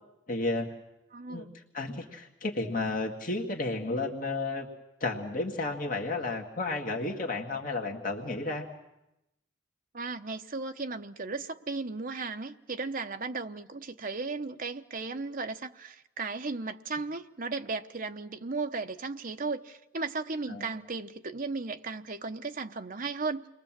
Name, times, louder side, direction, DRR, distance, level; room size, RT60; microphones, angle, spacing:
voice 1, 0.3-0.7 1.3-1.5 1.7-4.7 5.0-8.7 20.5-20.7, left 2 dB, 45° left, 2.0 m, -32 dB
voice 2, 1.1-1.6 9.9-23.5, right 3 dB, 45° right, 0.9 m, -35 dB
28.5 x 21.5 x 7.5 m
head